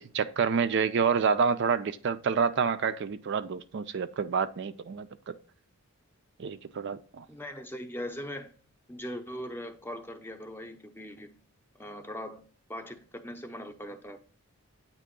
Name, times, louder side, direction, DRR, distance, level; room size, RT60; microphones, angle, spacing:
voice 1, 0.0-5.3 6.4-7.3, right 6 dB, 55° right, 0.4 m, -28 dB
voice 2, 7.3-8.5 8.9-11.3 11.7-12.4 12.7-14.2, equal, 10° left, 0.6 m, -40 dB
8.5 x 3.0 x 5.1 m
head